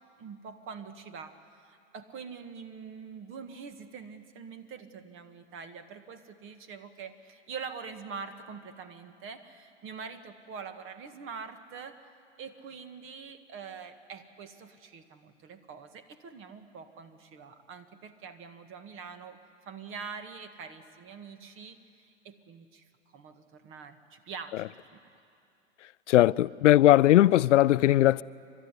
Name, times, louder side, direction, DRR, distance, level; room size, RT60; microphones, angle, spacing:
voice 1, 0.2-12.1 12.4-22.9 23.1-24.7 24.9-25.1, right 5 dB, 35° right, 1.8 m, -44 dB
voice 2, 26.1-28.2, left 14 dB, 80° left, 0.5 m, -19 dB
29.5 x 12.5 x 9.9 m
hypercardioid pair, 110°, 36 cm